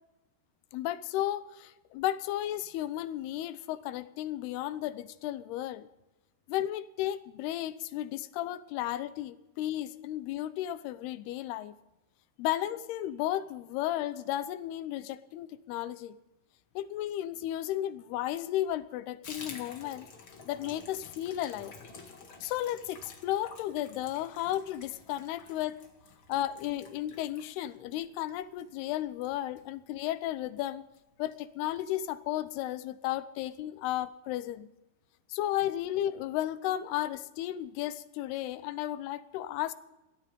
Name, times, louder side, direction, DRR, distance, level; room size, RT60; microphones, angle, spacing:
voice 1, 0.7-5.9 6.5-11.8 12.4-16.2 16.8-20.1 20.5-21.7 22.4-25.8 26.3-30.9 31.2-34.7 35.3-39.7, left 13 dB, 80° left, 15 dB, 2.7 m, -34 dB
Water tap faucet / Bathtub (filling or washing), 19.2-30.2 30.5-30.7 30.9-31.0 31.3-31.8 32.1-32.2 32.5-32.6, left 4 dB, 45° left, 1.7 m, -50 dB
17.0 x 13.0 x 5.4 m, 0.95 s
omnidirectional pair, 4.7 m